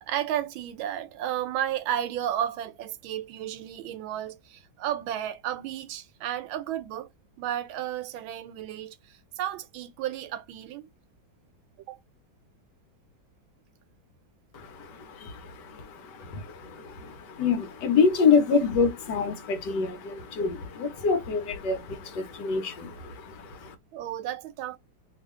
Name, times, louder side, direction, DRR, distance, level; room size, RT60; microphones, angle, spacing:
voice 1, 0.0-7.1 7.4-10.9 11.9-12.0 23.9-24.8, right 11 dB, 85° right, 1.4 m, -33 dB
voice 2, 14.5-23.7, left 5 dB, 65° left, 1.3 m, -27 dB
3.1 x 2.7 x 3.5 m
omnidirectional pair, 2.1 m